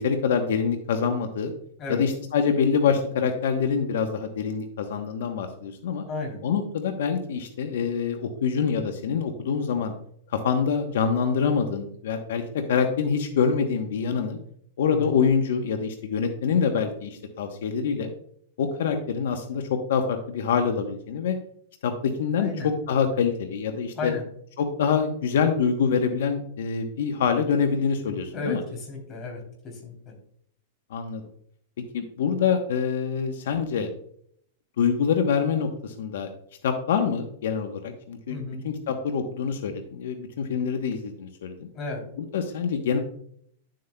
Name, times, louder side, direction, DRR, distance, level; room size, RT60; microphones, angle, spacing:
voice 1, 0.0-1.5 1.9-6.0 6.4-9.9 10.3-14.4 14.8-18.1 18.6-19.6 19.9-21.4 21.8-24.1 24.6-28.6 30.9-31.2 31.9-33.9 34.8-36.3 36.6-41.7 42.2-43.0, left 6 dB, 80° left, 6 dB, 1.0 m, -25 dB
voice 2, 6.1-6.4 14.9-15.2 22.4-22.7 23.9-24.2 28.3-29.9 38.3-38.6 41.7-42.0, left 3 dB, 30° left, 1 dB, 3.0 m, -33 dB
11.0 x 7.6 x 2.2 m, 0.66 s
supercardioid pair, 145°, 0 cm